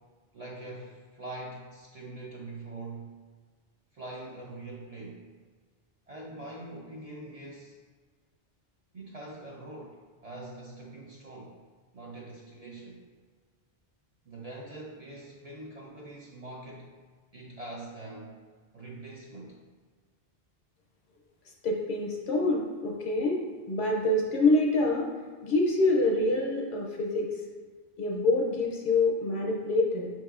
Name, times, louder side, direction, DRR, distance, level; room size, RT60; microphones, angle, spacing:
voice 1, 0.3-3.1 3.9-5.3 6.1-7.8 8.9-11.6 11.9-13.0 14.3-16.9 17.3-18.4 18.7-19.6, right 2 dB, 55° right, -4 dB, 0.4 m, -43 dB
voice 2, 21.6-23.4 23.7-25.1 25.4-27.4 28.0-30.1, left 2 dB, 60° left, 0 dB, 0.7 m, -26 dB
5.1 x 3.0 x 2.4 m, 1.5 s
omnidirectional pair, 1.1 m